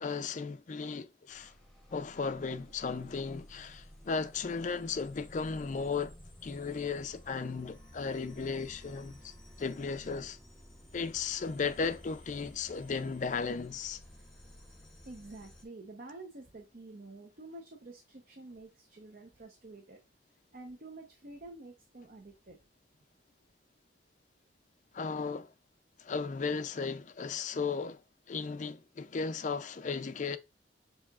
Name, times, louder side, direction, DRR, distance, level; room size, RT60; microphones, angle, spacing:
voice 1, 0.0-1.5 1.9-6.2 6.4-10.4 10.9-14.0 24.9-25.5 26.0-28.0 28.3-30.4, left 5 dB, 40° left, 0.4 m, -35 dB
sound 1, 1.3-15.6, equal, 5° left, 0.9 m, -54 dB
voice 2, 15.1-20.0 20.5-22.6, right 2 dB, 50° right, 0.7 m, -49 dB
7.1 x 2.9 x 2.4 m
head